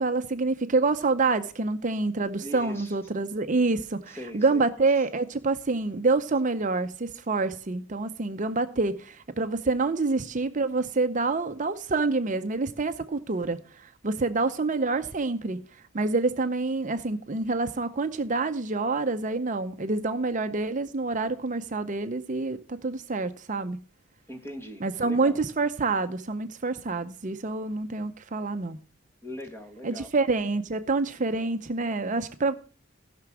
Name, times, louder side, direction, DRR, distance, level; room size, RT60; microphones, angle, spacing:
voice 1, 0.0-23.8 24.8-28.8 29.8-32.5, right 3 dB, 40° right, 0.6 m, -27 dB
voice 2, 2.4-2.9 4.1-4.6 24.3-25.4 29.2-30.1, equal, 10° left, 1.6 m, -40 dB
16.0 x 5.9 x 6.0 m
head